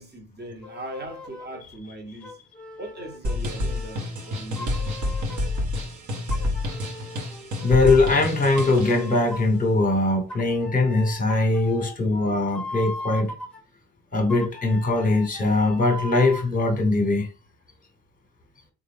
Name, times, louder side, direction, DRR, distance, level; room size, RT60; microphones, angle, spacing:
voice 1, 0.0-2.4 2.8-5.2, right 1 dB, 25° right, 1.2 m, -40 dB
sound 1, 0.6-1.6 2.2-5.6 6.3-8.2 8.5-9.6 10.3-13.6 14.3-16.5, left 2 dB, 5° left, 1.1 m, -39 dB
sound 2, 3.2-9.1, left 1 dB, 45° right, 1.2 m, -28 dB
voice 2, 7.6-13.3 14.1-17.3, left 2 dB, 20° left, 1.3 m, -21 dB
3.5 x 2.5 x 3.5 m
supercardioid pair, 75°, 41 cm